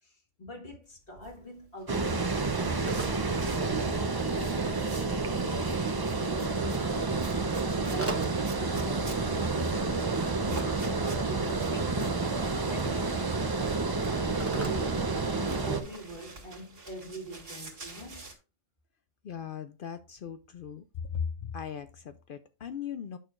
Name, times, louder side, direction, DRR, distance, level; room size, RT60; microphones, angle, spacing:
voice 1, 0.0-5.8 6.2-6.9 7.4-10.3 10.6-15.2 15.6-18.3, equal, 45° left, 1.9 m, -43 dB
sound 1, 1.0-5.2 5.5-18.3, right 3 dB, 70° right, 2.2 m, -48 dB
Telephone, 1.3-15.8, right 1 dB, 15° right, 0.7 m, -46 dB
Water, 1.9-15.8, right 3 dB, 35° right, 0.3 m, -29 dB
voice 2, 19.2-20.8 21.1-23.2, left 7 dB, 65° left, 0.5 m, -38 dB
9.2 x 6.2 x 2.4 m
omnidirectional pair, 1.3 m